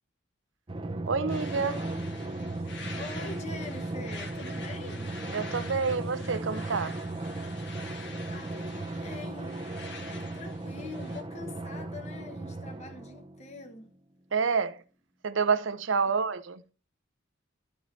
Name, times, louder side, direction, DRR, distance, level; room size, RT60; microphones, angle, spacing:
Drum, 0.7-13.8, right 2 dB, 25° right, 0.6 m, -36 dB
voice 1, 1.1-1.9 5.3-7.0 14.3-14.8 15.2-16.6, right 5 dB, 80° right, 0.7 m, -28 dB
sound 1, 1.3-11.2, left 4 dB, 60° left, 1.4 m, -47 dB
voice 2, 3.0-5.2 8.3-9.6 10.1-13.9 16.0-16.1, left 3 dB, 35° left, 1.0 m, -44 dB
13.0 x 4.7 x 4.0 m
head